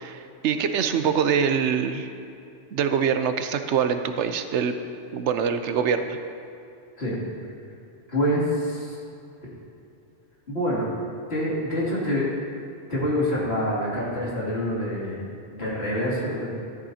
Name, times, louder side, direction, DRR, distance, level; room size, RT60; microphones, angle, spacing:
voice 1, 0.0-2.1 2.7-4.7 5.1-6.2, right 7 dB, 75° right, 8 dB, 0.9 m, -24 dB
voice 2, 8.1-9.0 10.5-10.9 11.3-12.3 12.9-16.5, equal, 60° left, -7 dB, 2.9 m, -26 dB
13.5 x 12.0 x 2.8 m, 2.6 s
omnidirectional pair, 1.2 m